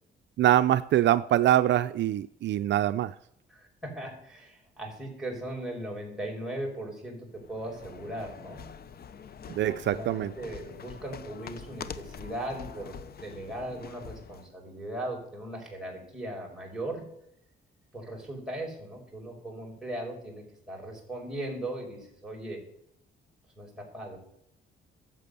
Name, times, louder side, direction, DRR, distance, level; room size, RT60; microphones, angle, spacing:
voice 1, 0.4-3.1 9.5-10.3, right 12 dB, 65° right, 12 dB, 0.5 m, -24 dB
voice 2, 3.5-8.7 9.6-17.0 17.9-22.6 23.6-24.2, right 1 dB, 5° right, -2 dB, 5.4 m, -38 dB
sound 1, 7.3-14.5, left 7 dB, 50° left, 0.8 m, -45 dB
12.0 x 7.7 x 6.8 m, 0.74 s
cardioid pair, 90°, 20 cm